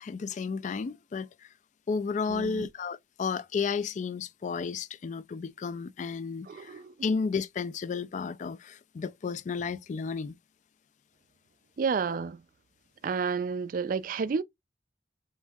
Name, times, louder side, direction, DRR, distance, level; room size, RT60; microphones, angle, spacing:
voice 1, 0.0-1.5 1.9-10.4, left 5 dB, 45° left, 0.3 m, -33 dB
voice 2, 2.3-2.7 6.5-6.9 11.8-12.4 13.0-14.4, right 5 dB, 50° right, 0.3 m, -30 dB
5.4 x 2.6 x 2.3 m
head